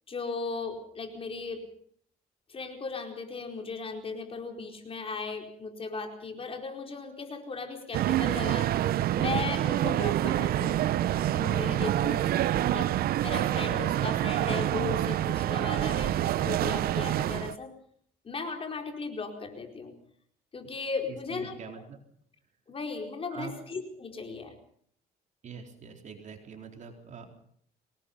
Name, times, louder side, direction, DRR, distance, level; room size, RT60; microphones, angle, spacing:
voice 1, 0.1-1.6 2.5-8.7 9.1-10.8 11.3-12.3 12.7-12.9 13.2-17.7 18.2-19.9 20.5-21.6 22.7-24.5, left 4 dB, 35° left, 4 dB, 4.6 m, -36 dB
sound 1, 7.9-17.6, right 13 dB, 65° right, 0.8 m, -27 dB
voice 2, 12.5-12.9 21.3-22.0 23.3-23.5 25.4-27.3, right 6 dB, 45° right, 4 dB, 4.0 m, -44 dB
25.5 x 19.5 x 5.5 m, 0.62 s
cardioid pair, 110°, 17 cm